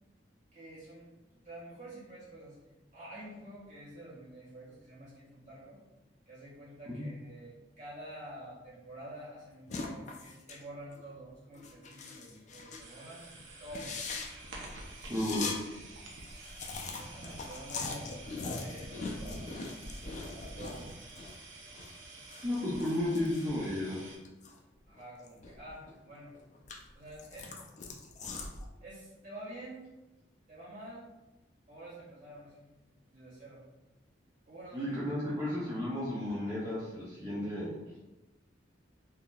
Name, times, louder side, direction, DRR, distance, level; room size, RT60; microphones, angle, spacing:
voice 1, 0.5-1.1 1.4-2.5 2.9-5.8 6.2-14.0 16.9-18.1 18.4-19.5 20.3-20.9 22.1-22.3 24.9-26.3 26.9-27.5 28.8-29.8 30.5-31.1 31.7-32.6 33.1-33.6 34.5-35.0, right 1 dB, 40° right, -7 dB, 1.5 m, -48 dB
Eating Pringles, 9.7-10.6 10.9-11.1 11.5-12.9 13.2-13.3 13.6-15.6 15.9-16.0 16.2-21.4 21.7-24.6 24.9-25.9 26.3-28.7, left 4 dB, 40° left, 0.3 m, -41 dB
sound 1, 12.8-24.1, right 2 dB, 90° right, 0.6 m, -49 dB
voice 2, 15.1-15.6 22.4-24.1 34.7-37.7, left 1 dB, 20° right, -8 dB, 0.5 m, -33 dB
3.7 x 2.7 x 2.3 m, 1.0 s
head